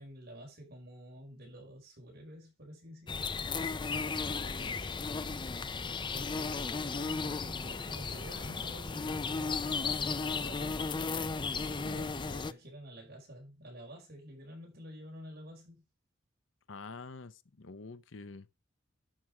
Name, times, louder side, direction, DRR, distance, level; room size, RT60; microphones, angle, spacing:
voice 1, 0.0-3.2 6.1-10.9 11.5-15.8, equal, 55° right, 5.5 m, -49 dB
sound 1, 3.1-12.5, left 4 dB, 25° left, 0.5 m, -35 dB
voice 2, 4.4-4.8 11.8-12.1 16.7-18.5, left 3 dB, 75° left, 0.8 m, -47 dB
11.5 x 6.4 x 4.8 m
head